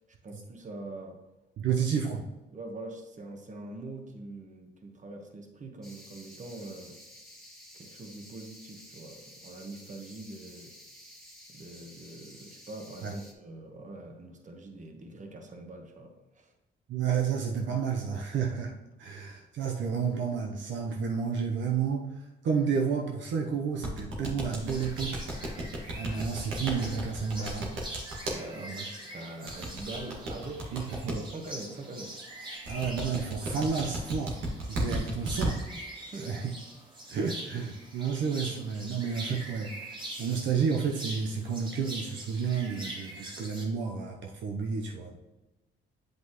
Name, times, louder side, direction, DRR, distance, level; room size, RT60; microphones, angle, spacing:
voice 1, 0.2-1.2 2.5-7.0 7.7-10.7 11.5-16.5 28.3-30.7 31.1-32.2 35.9-36.3 37.2-37.4, right 2 dB, 40° right, 3 dB, 1.4 m, -43 dB
voice 2, 1.6-2.2 13.0-13.1 16.9-18.7 19.0-25.3 25.9-27.7 28.6-28.8 30.7-31.2 32.7-34.4 34.7-35.6 36.2-36.5 37.1-45.2, right 6 dB, 70° right, 0 dB, 0.8 m, -31 dB
sound 1, 5.8-13.3, equal, ahead, 1.6 m, -52 dB
sound 2, 23.8-28.4 29.5-31.1 32.6-35.5, right 2 dB, 90° right, 1.9 m, -33 dB
sound 3, 24.5-43.6, right 1 dB, 25° right, 1.9 m, -44 dB
8.2 x 5.2 x 3.1 m, 1.1 s
cardioid pair, 90°, 20 cm